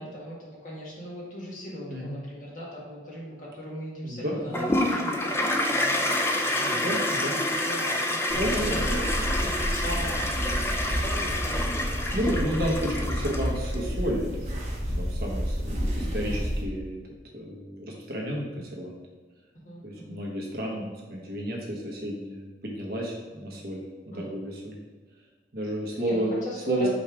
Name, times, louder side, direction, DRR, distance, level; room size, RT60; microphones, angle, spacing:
voice 1, 0.0-7.0 7.5-9.0 9.6-12.6 15.9-16.5 19.6-20.2 24.1-24.3 25.9-26.9, equal, 45° left, -5 dB, 1.7 m, -39 dB
voice 2, 4.0-4.7 6.7-7.4 8.3-8.8 9.4-9.5 12.1-17.0 17.3-19.0 19.8-24.8 25.5-26.3 26.7-26.9, equal, 55° right, -2 dB, 1.2 m, -32 dB
Toilet flush, 4.5-13.8, left 1 dB, 15° left, 0.4 m, -28 dB
sound 1, 8.3-16.6, equal, 35° right, 1.4 m, -30 dB
5.4 x 3.5 x 4.9 m, 1.3 s
head